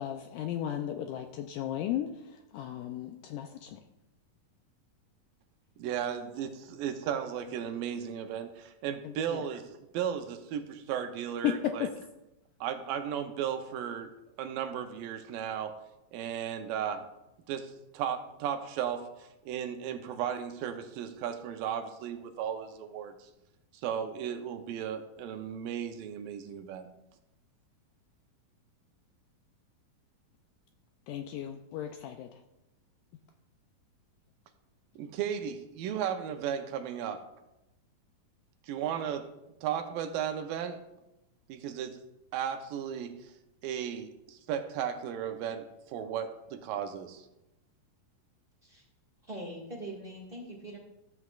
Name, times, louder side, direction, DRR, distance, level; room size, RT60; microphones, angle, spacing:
voice 1, 0.0-2.1 2.5-3.8 9.0-9.4 11.4-11.9 31.1-32.3, left 11 dB, 80° left, 5 dB, 1.9 m, -34 dB
voice 2, 5.8-11.9 12.6-14.1 14.4-15.8 16.1-17.1 17.5-23.3 23.8-26.9 35.0-37.2 38.7-39.3 39.6-40.8 41.5-42.0 42.3-43.3 43.6-47.3, right 9 dB, 80° right, 7 dB, 2.3 m, -35 dB
voice 3, 49.2-50.8, right 1 dB, 35° right, -3 dB, 0.9 m, -42 dB
13.5 x 7.8 x 2.4 m, 0.92 s
omnidirectional pair, 4.1 m